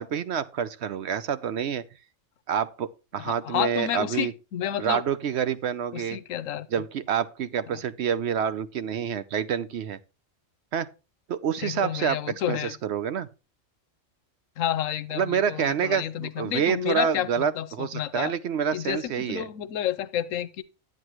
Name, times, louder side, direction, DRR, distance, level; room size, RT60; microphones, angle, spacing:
voice 1, 0.0-1.8 2.5-2.9 3.1-4.3 4.8-6.2 6.7-10.0 10.7-10.9 11.3-12.2 12.5-13.3 15.1-19.5, right 8 dB, 65° right, 0.8 m, -27 dB
voice 2, 3.2-5.0 5.9-6.7 7.7-7.8 11.6-12.7 14.6-18.3 18.7-20.6, left 11 dB, 80° left, 1.0 m, -30 dB
9.6 x 9.4 x 3.0 m
omnidirectional pair, 1.3 m